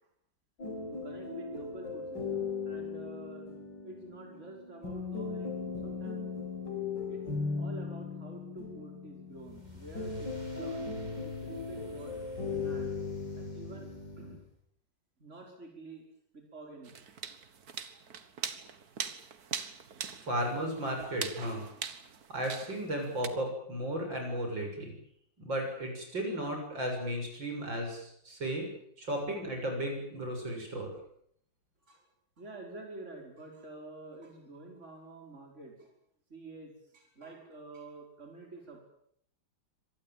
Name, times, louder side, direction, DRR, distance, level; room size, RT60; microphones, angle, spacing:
sound 1, 0.6-14.4, left 4 dB, 70° left, 5.8 m, -38 dB
voice 1, 0.9-3.4 3.8-6.2 7.1-7.2 7.6-10.9 11.2-12.2 12.5-12.9 13.4-13.9 14.2-14.4 15.2-16.0 16.3-16.9 31.9-32.0 32.4-35.9 36.3-38.8, right 2 dB, 35° right, 1 dB, 5.6 m, -48 dB
sound 2, 9.3-14.6, left 1 dB, 20° right, 6.6 m, -54 dB
sound 3, 16.9-23.3, right 6 dB, 55° right, 2.0 m, -41 dB
voice 2, 20.2-21.6 22.3-24.9 25.4-28.7 29.0-30.9, right 1 dB, 75° right, 3 dB, 7.6 m, -34 dB
25.5 x 19.0 x 9.1 m, 0.70 s
omnidirectional pair, 2.1 m